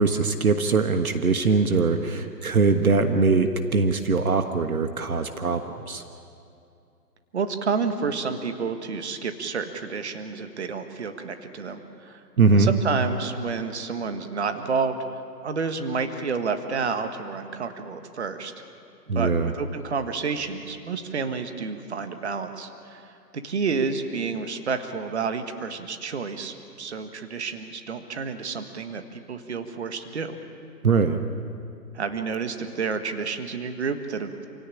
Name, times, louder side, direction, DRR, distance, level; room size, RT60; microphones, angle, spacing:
voice 1, 0.0-6.0 12.4-12.7 19.1-19.5 30.8-31.2, right 4 dB, 55° right, 8 dB, 1.5 m, -22 dB
voice 2, 7.3-12.2 12.5-15.0 15.4-18.5 19.1-19.3 19.6-23.1 23.4-30.3 31.9-34.3, right 5 dB, 40° right, 8 dB, 1.6 m, -30 dB
27.5 x 17.5 x 9.9 m, 2.5 s
hypercardioid pair, 170°, 50 cm